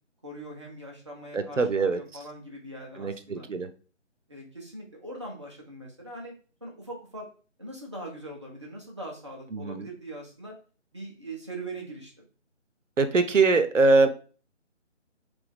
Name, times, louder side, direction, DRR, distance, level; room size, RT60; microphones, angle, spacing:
voice 1, 0.2-3.4 4.3-6.3 6.6-7.3 7.6-10.6 10.9-12.1, right 1 dB, 25° right, -1 dB, 0.6 m, -41 dB
voice 2, 1.3-2.0 3.0-3.7 9.5-9.9 13.0-14.1, right 3 dB, 85° right, 9 dB, 0.7 m, -22 dB
3.4 x 3.2 x 3.5 m, 0.38 s
figure-of-eight pair, 155°, 36 cm